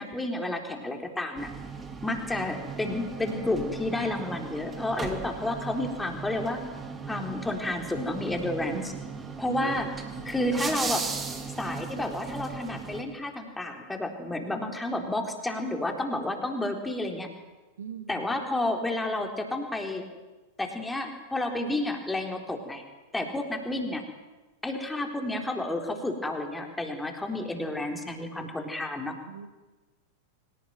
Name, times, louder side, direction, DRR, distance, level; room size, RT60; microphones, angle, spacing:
voice 1, 0.0-1.5 2.0-6.6 7.1-8.9 9.4-9.9 10.2-11.0 11.6-17.3 18.1-20.0 20.6-22.8 23.1-24.0 24.6-29.2, left 2 dB, 5° left, 4 dB, 3.9 m, -31 dB
sound 1, 1.4-13.0, right 5 dB, 15° right, 3.3 m, -37 dB
voice 2, 8.7-9.7 10.2-10.3 17.8-18.3 29.3-29.5, right 8 dB, 65° right, 9 dB, 2.0 m, -40 dB
24.5 x 18.5 x 9.3 m, 1.2 s
figure-of-eight pair, 90°, 0 cm